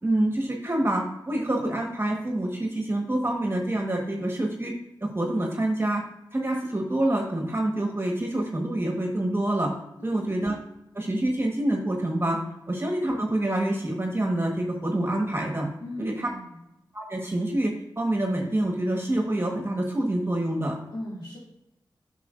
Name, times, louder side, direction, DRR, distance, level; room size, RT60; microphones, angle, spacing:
voice 1, 0.0-4.7 5.0-6.0 6.3-9.7 10.0-10.6 10.9-12.4 12.7-15.7 16.0-16.3 16.9-20.8, right 1 dB, 30° right, 1 dB, 1.2 m, -26 dB
voice 2, 10.0-10.3 15.8-16.6 20.9-21.4, left 1 dB, 60° left, -9 dB, 2.2 m, -38 dB
8.1 x 5.9 x 2.5 m, 0.86 s
cardioid pair, 40°, 8 cm